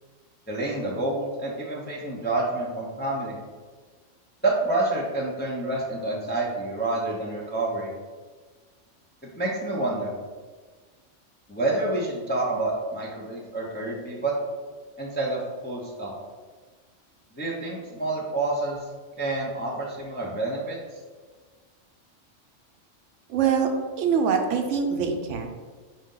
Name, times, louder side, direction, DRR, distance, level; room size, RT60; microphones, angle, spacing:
voice 1, 0.5-3.4 4.4-7.9 9.4-10.1 11.5-14.3 15.0-16.1 17.4-18.8 19.2-20.8, right 2 dB, 15° left, -3 dB, 0.4 m, -28 dB
voice 2, 23.3-23.7 24.0-25.5, right 6 dB, 75° right, 4 dB, 0.9 m, -24 dB
5.0 x 2.7 x 3.7 m, 1.4 s
omnidirectional pair, 1.3 m